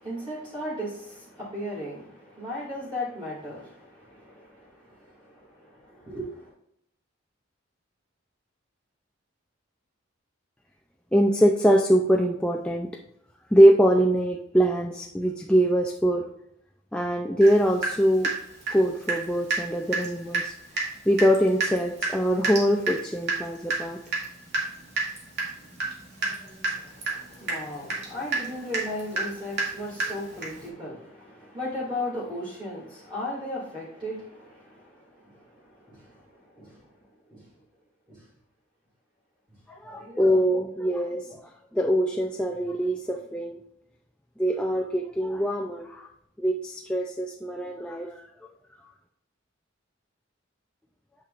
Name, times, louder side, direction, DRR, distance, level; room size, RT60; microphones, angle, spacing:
voice 1, 0.0-6.5 26.7-36.9 37.3-37.5 38.1-38.2 39.8-40.4, left 1 dB, 25° right, -8 dB, 2.3 m, -37 dB
voice 2, 11.1-12.9 13.5-16.2 16.9-18.3 18.7-24.0 39.7-43.6 44.4-46.1 46.4-48.3, equal, 5° left, 0 dB, 0.4 m, -23 dB
Water tap faucet / Drip, 17.4-17.5 17.8-19.2 19.5-19.6 19.9-20.1 20.3-20.5 20.8-20.9 21.2-30.7, right 3 dB, 55° right, 2.3 m, -29 dB
8.7 x 6.0 x 2.5 m, 0.74 s
head